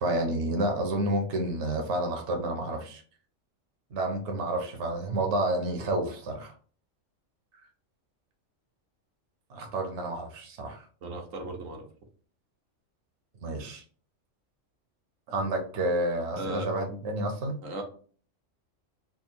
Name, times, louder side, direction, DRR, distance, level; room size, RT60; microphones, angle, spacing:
voice 1, 0.0-3.0 3.9-6.5 9.5-10.8 13.4-13.8 15.3-17.6, right 1 dB, 65° right, 2 dB, 1.1 m, -30 dB
voice 2, 11.0-11.8 16.4-16.7 17.6-17.8, right 1 dB, 85° right, 2 dB, 1.2 m, -36 dB
3.5 x 2.1 x 4.3 m, 0.43 s
omnidirectional pair, 1.3 m